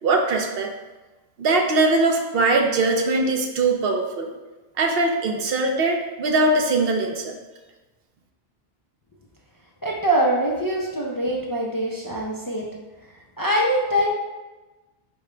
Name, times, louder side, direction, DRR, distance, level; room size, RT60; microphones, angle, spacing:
voice 1, 0.0-0.7 1.4-4.3 4.8-7.3, right 2 dB, 70° right, 3 dB, 0.8 m, -21 dB
voice 2, 9.8-12.7 13.4-14.1, right 1 dB, 30° left, -3 dB, 0.4 m, -23 dB
5.0 x 2.2 x 4.9 m, 1.2 s
omnidirectional pair, 1.1 m